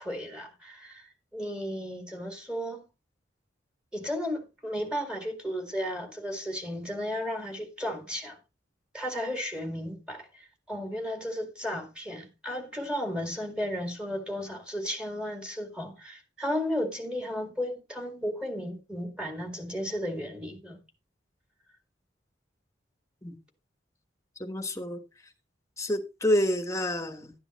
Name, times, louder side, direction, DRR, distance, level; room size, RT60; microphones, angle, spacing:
voice 1, 0.0-2.8 3.9-8.4 8.9-20.8, equal, 5° right, 2.0 m, -34 dB
voice 2, 24.4-25.0 25.8-27.3, left 1 dB, 15° left, 1.3 m, -28 dB
12.0 x 9.8 x 3.1 m
head